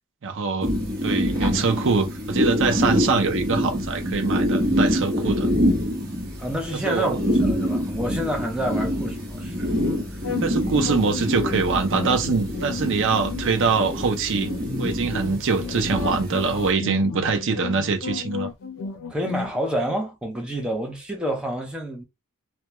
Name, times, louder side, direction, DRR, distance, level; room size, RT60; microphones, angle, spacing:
voice 1, 0.2-0.7 1.0-5.5 6.9-7.2 10.3-14.5 14.8-18.5, right 4 dB, 60° right, 0.5 m, -23 dB
sound 1, 0.6-16.7, equal, 40° right, 1.1 m, -26 dB
voice 2, 6.4-9.7 19.1-22.0, right 1 dB, 5° right, 0.7 m, -28 dB
sound 2, 9.8-19.5, left 5 dB, 65° left, 0.6 m, -33 dB
2.2 x 2.1 x 2.9 m
head